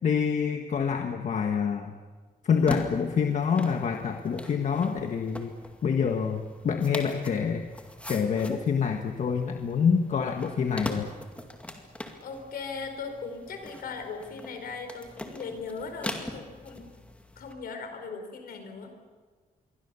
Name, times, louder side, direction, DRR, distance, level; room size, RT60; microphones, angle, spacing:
voice 1, 0.0-1.9 2.4-5.5 5.8-7.6 8.1-11.1, left 6 dB, 55° left, 4 dB, 1.5 m, -26 dB
sound 1, 2.5-17.5, left 1 dB, 10° left, 2.2 m, -42 dB
voice 2, 12.2-16.9 17.4-19.1, left 4 dB, 80° left, 6 dB, 4.6 m, -38 dB
28.0 x 23.5 x 7.1 m, 1.5 s
wide cardioid pair, 180°, 15 cm